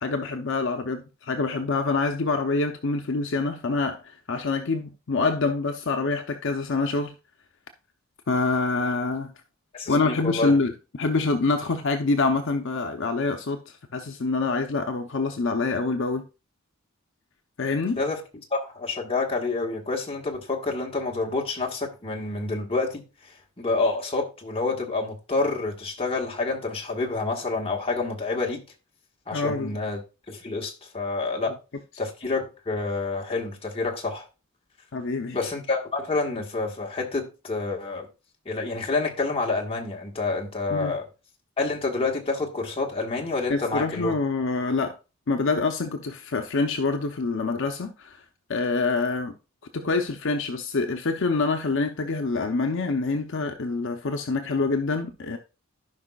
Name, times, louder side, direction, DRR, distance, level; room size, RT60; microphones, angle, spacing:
voice 1, 0.0-7.1 8.3-9.3 9.9-16.3 17.6-18.0 29.3-29.8 34.9-35.4 40.7-40.9 43.5-44.9 45.3-48.2 48.5-49.4 49.7-55.4, left 3 dB, 60° left, 0.6 m, -26 dB
voice 2, 9.7-10.5 18.0-18.2 18.5-23.0 23.6-28.6 29.3-30.0 30.3-31.5 32.0-34.2 35.3-38.1 38.4-41.1 41.6-44.1, left 3 dB, 25° left, 1.5 m, -28 dB
15.0 x 5.2 x 2.3 m
head